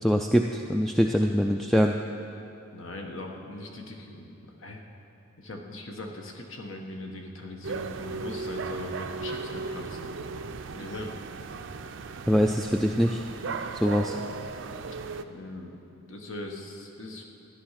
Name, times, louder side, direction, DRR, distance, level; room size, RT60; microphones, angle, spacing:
voice 1, 0.0-2.0 12.3-13.2 13.7-14.2, equal, ahead, 3 dB, 0.3 m, -23 dB
voice 2, 2.7-4.8 5.4-10.1 10.7-11.1 15.2-15.8 16.1-17.2, left 2 dB, 70° left, 2 dB, 1.4 m, -40 dB
sound 1, 7.6-15.2, right 4 dB, 60° right, 0.5 m, -36 dB
13.0 x 10.5 x 5.8 m, 2.9 s
head